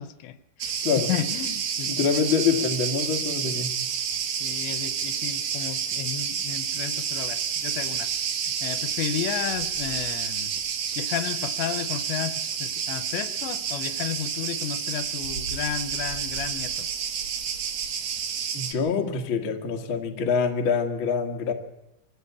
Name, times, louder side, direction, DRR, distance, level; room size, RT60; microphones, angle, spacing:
voice 1, 0.0-2.0 4.4-8.1 8.4-10.5 11.0-16.9, left 10 dB, 80° left, 13 dB, 3.1 m, -33 dB
Cricket, 0.6-18.7, right 7 dB, 65° right, 1.7 m, -29 dB
voice 2, 1.8-3.7 18.5-21.5, left 6 dB, 50° left, 4 dB, 1.5 m, -25 dB
24.0 x 15.0 x 8.4 m, 0.90 s
omnidirectional pair, 5.2 m